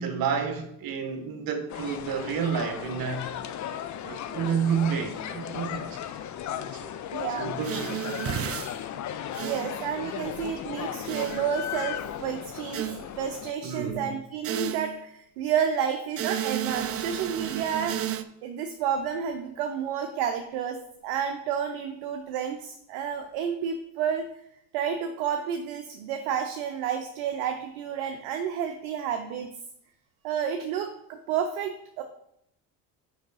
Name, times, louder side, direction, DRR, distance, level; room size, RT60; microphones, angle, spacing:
voice 1, 0.0-3.2 4.0-6.1 6.6-7.0 7.4-8.0 13.6-14.1, right 6 dB, 55° right, 1.1 m, -30 dB
sound 1, 1.7-13.5, left 10 dB, 40° left, 0.6 m, -36 dB
voice 2, 7.1-7.5 9.4-12.9 13.2-18.1 18.4-20.8 21.0-24.3 24.7-29.5 30.2-32.0, right 8 dB, 70° right, 0.7 m, -30 dB
sound 2, 7.6-8.7 9.3-9.7 11.1-11.5 12.7-13.0 14.4-15.0 16.2-18.2, right 11 dB, 35° right, 0.4 m, -32 dB
5.2 x 4.9 x 4.0 m
hypercardioid pair, 60°, 43 cm